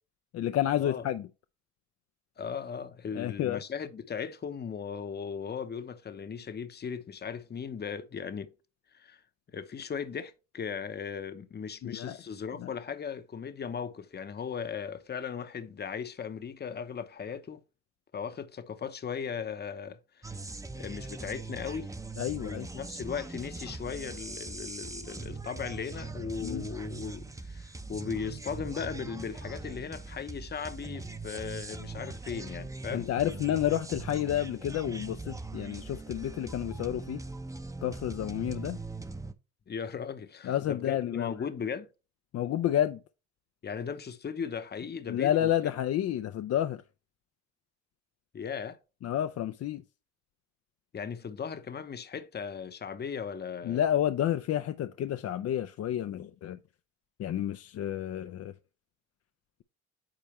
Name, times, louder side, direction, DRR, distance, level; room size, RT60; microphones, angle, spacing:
voice 1, 0.3-1.3 3.1-3.6 11.8-12.2 12.6-12.7 22.2-22.7 26.4-26.7 32.9-37.2 37.8-38.8 40.4-41.3 42.3-43.0 45.1-46.8 49.0-49.8 53.6-56.6 57.2-58.5, left 11 dB, 55° left, 0.5 m, -30 dB
voice 2, 2.4-8.5 8.9-9.2 9.5-17.6 18.1-20.4 20.7-21.9 22.4-33.1 39.7-41.9 43.6-45.5 48.3-48.8 50.9-53.8, left 6 dB, 35° left, 0.8 m, -37 dB
sound 1, 20.2-39.3, right 3 dB, 10° right, 0.7 m, -41 dB
8.7 x 4.3 x 3.0 m
cardioid pair, 90°, 30 cm